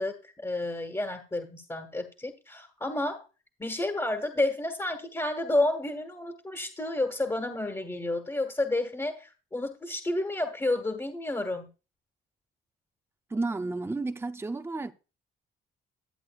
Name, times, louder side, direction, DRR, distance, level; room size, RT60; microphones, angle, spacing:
voice 1, 0.0-3.3 3.6-11.7, left 2 dB, 15° left, 1.7 m, -30 dB
voice 2, 13.3-14.9, right 3 dB, 10° right, 0.6 m, -32 dB
11.5 x 8.0 x 2.4 m
cardioid pair, 90°, 20 cm